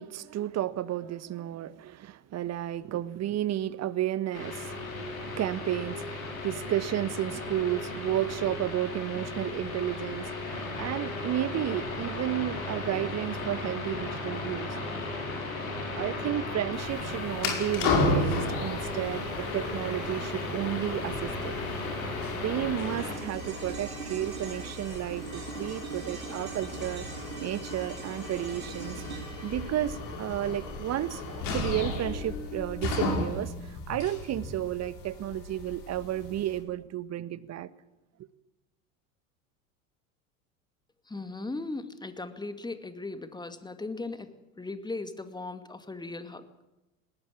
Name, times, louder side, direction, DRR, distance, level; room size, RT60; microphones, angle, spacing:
voice 1, 0.0-14.8 15.7-21.5 22.3-27.1 27.4-29.0 29.4-37.7, right 12 dB, 40° right, 16 dB, 1.4 m, -32 dB
sound 1, 4.3-23.1, left 2 dB, 85° left, 5.7 m, -35 dB
sound 2, 16.7-36.6, left 2 dB, 55° left, 6.0 m, -35 dB
sound 3, 22.9-31.4 31.7-31.8, right 5 dB, 90° right, 4.7 m, -43 dB
voice 2, 41.1-46.5, left 3 dB, 10° left, 10 dB, 2.3 m, -38 dB
20.5 x 18.5 x 8.8 m, 0.95 s
hypercardioid pair, 75°, 41 cm